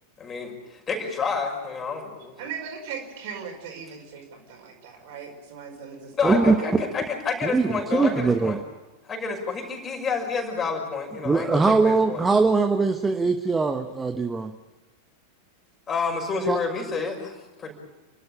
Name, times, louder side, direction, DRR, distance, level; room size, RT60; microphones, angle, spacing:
voice 1, 0.2-2.4 6.2-8.5 9.0-12.2 15.9-17.7, left 5 dB, 20° left, 1 dB, 5.8 m, -29 dB
voice 2, 2.4-6.1 6.5-6.8, right 7 dB, 50° right, 2 dB, 5.3 m, -38 dB
voice 3, 6.2-6.6 7.4-8.6 11.2-14.5 16.5-16.6, right 4 dB, 10° right, 7 dB, 1.1 m, -21 dB
30.0 x 12.5 x 8.8 m, 1.2 s
figure-of-eight pair, 90°, 0 cm